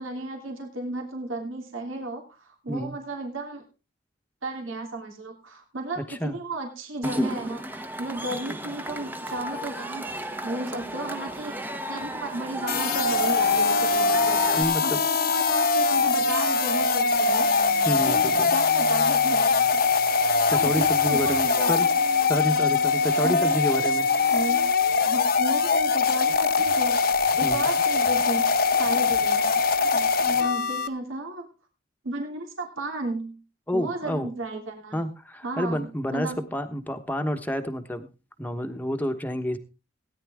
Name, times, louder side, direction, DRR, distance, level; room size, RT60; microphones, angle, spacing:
voice 1, 0.0-3.6 4.4-11.6 11.9-19.8 20.5-21.7 23.2-23.5 24.3-24.7 25.0-29.4 29.9-31.5 32.0-33.4 33.7-35.0 35.4-36.4, right 2 dB, 85° right, 2 dB, 3.2 m, -34 dB
voice 2, 6.0-6.4 14.6-15.0 17.9-18.5 20.5-21.9 22.3-24.1 27.4-27.7 33.7-34.3 34.9-38.1 38.4-39.6, equal, 10° left, 6 dB, 1.1 m, -29 dB
Cheering / Crowd, 7.0-14.6, right 1 dB, 10° right, 0.9 m, -33 dB
sound 1, 12.7-30.9, left 4 dB, 50° left, 0.9 m, -22 dB
17.5 x 10.0 x 3.6 m, 0.31 s
head